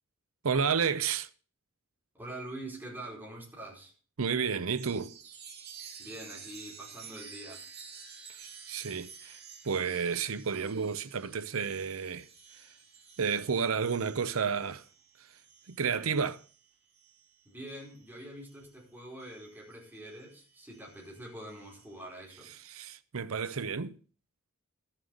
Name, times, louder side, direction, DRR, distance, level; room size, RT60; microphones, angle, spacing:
voice 1, 0.4-1.3 4.2-5.1 8.3-9.4 9.6-12.3 13.2-14.8 15.7-16.4 22.5-24.0, right 6 dB, 80° right, 0.7 m, -31 dB
voice 2, 2.1-3.9 6.0-7.6 17.4-22.5, right 1 dB, 10° right, 4.8 m, -45 dB
Chime, 4.8-18.7 19.2-22.0, right 6 dB, 50° right, 3.5 m, -52 dB
12.5 x 7.5 x 6.5 m
head